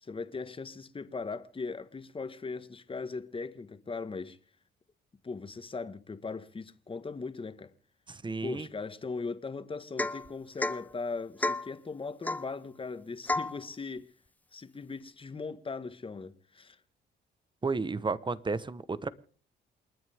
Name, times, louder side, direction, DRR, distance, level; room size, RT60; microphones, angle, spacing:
voice 1, 0.0-4.4 5.2-7.7 8.4-14.1 14.5-16.8, left 4 dB, 25° left, 1.5 m, -39 dB
voice 2, 8.1-8.7 17.6-19.1, right 4 dB, 25° right, 1.2 m, -32 dB
Domestic sounds home sounds / Chink clink / Drip, 10.0-10.3 10.6-10.8 11.4-11.7 12.3-12.5 13.3-13.6, left 2 dB, 10° left, 0.8 m, -31 dB
29.0 x 9.6 x 3.6 m
cardioid pair, 90°, 20 cm